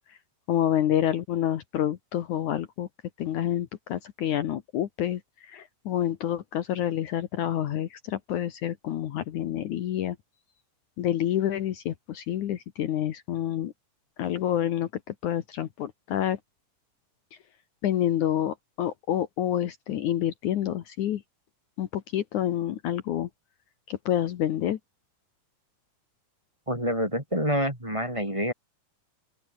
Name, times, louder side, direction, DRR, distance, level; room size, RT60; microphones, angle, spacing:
voice 1, 0.5-2.9 3.2-10.2 11.0-13.7 14.2-16.4 17.8-21.2 21.8-23.3 23.9-24.8, left 11 dB, 65° left, 2.5 m, -28 dB
voice 2, 26.7-28.5, equal, 10° right, 4.4 m, -27 dB
open air
omnidirectional pair, 3.9 m